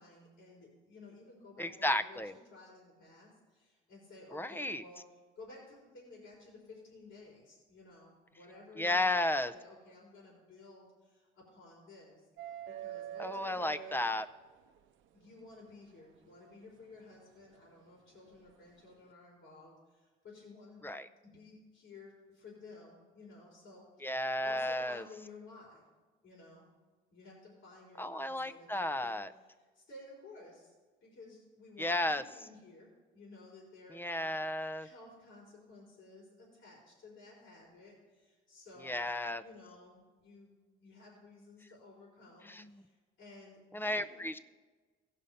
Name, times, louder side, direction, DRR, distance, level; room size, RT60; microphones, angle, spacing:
voice 1, 0.0-5.0 5.4-12.3 12.7-14.0 15.1-20.8 21.2-25.8 26.2-26.7 27.1-29.2 29.6-30.7 31.0-34.3 34.8-39.1 39.4-40.5 40.8-44.2, left 2 dB, 75° left, -3 dB, 4.0 m, -55 dB
voice 2, 1.6-2.3 4.3-4.8 8.8-9.5 13.2-14.3 20.8-21.1 24.0-25.0 28.0-29.3 31.8-32.2 33.9-34.9 38.8-39.4 42.5-42.6 43.7-44.4, left 1 dB, 10° left, 13 dB, 0.5 m, -33 dB
sound 1, 12.4-14.8 16.4-16.5 18.3-18.5, right 12 dB, 80° right, 0.6 m, -45 dB
16.0 x 5.6 x 5.2 m, 1.3 s
cardioid pair, 90°, 20 cm